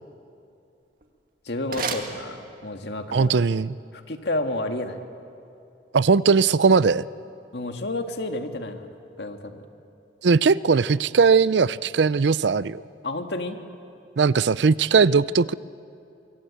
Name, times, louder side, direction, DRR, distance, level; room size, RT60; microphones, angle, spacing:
sound 1, 0.8-2.9, right 4 dB, 50° right, 2.1 m, -35 dB
voice 1, 1.5-3.4 3.9-5.0 7.5-8.9 9.2-9.6 13.0-13.6, left 2 dB, 70° left, 5 dB, 1.9 m, -30 dB
voice 2, 3.1-3.8 5.9-7.1 10.2-12.8 14.2-15.5, right 5 dB, 80° right, 18 dB, 0.5 m, -19 dB
24.0 x 24.0 x 8.7 m, 2.6 s
head